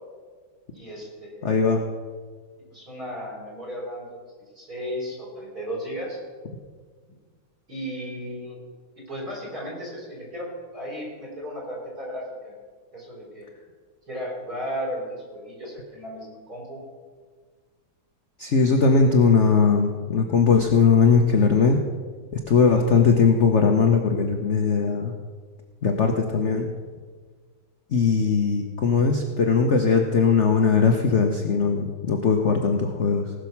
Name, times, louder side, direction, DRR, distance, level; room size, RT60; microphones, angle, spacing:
voice 1, 0.7-1.6 2.7-4.2 4.5-6.2 7.7-8.6 9.0-12.5 12.9-13.5 14.1-16.8, equal, 45° right, -4 dB, 5.0 m, -35 dB
voice 2, 1.4-1.8 18.4-21.8 22.3-25.1 25.8-26.7 27.9-33.3, left 5 dB, 55° left, 3 dB, 0.8 m, -20 dB
18.5 x 6.4 x 5.9 m, 1.6 s
omnidirectional pair, 2.3 m